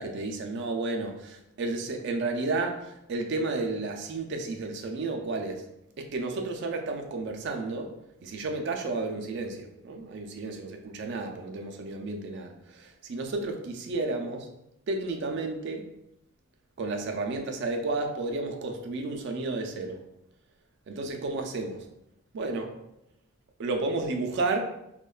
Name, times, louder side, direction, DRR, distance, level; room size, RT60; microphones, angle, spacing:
voice 1, 0.0-5.6 6.0-7.9 8.2-14.5 14.9-15.9 16.8-20.0 20.9-21.8 22.3-22.7 23.6-24.6, right 3 dB, 55° right, 3 dB, 0.3 m, -32 dB
3.0 x 2.1 x 2.2 m, 0.83 s
head